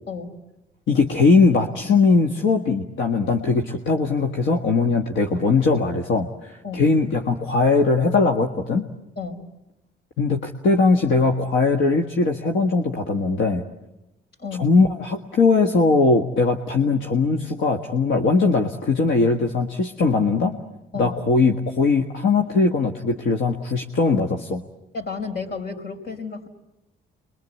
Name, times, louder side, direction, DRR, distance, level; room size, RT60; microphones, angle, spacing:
voice 1, 0.9-8.9 10.2-13.6 14.6-20.6 21.0-24.6, left 4 dB, 75° left, 3 dB, 1.8 m, -20 dB
voice 2, 24.9-26.5, left 4 dB, 55° left, 5 dB, 4.8 m, -32 dB
29.5 x 23.0 x 8.4 m, 0.96 s
cardioid pair, 90°, 20 cm